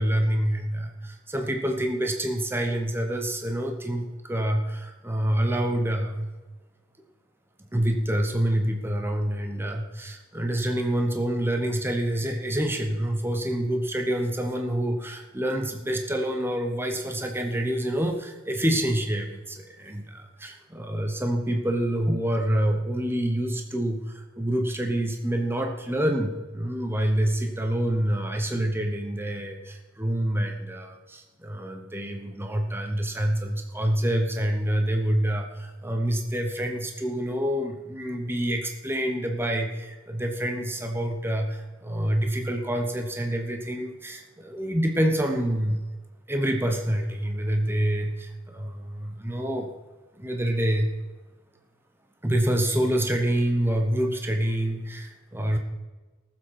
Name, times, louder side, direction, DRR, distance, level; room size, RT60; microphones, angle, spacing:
voice 1, 0.0-6.3 7.6-45.8 46.3-49.7 50.2-50.9 52.2-55.6, right 1 dB, 10° right, 3 dB, 1.0 m, -27 dB
18.5 x 7.6 x 4.7 m, 1.2 s
head